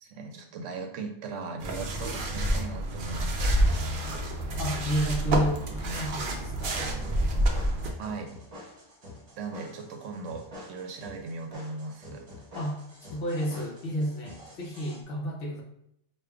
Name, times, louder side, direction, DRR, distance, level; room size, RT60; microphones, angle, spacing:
voice 1, 0.0-3.8 8.0-8.3 9.4-12.3, right 4 dB, 80° right, 4 dB, 0.9 m, -38 dB
sound 1, 1.6-7.9, right 1 dB, 55° right, 0.6 m, -28 dB
voice 2, 4.6-6.9 12.5-12.8 13.1-15.6, equal, 55° left, 0 dB, 0.8 m, -31 dB
sound 2, 7.0-15.0, left 1 dB, 35° right, 0.9 m, -47 dB
4.8 x 2.4 x 2.3 m, 0.74 s
omnidirectional pair, 1.3 m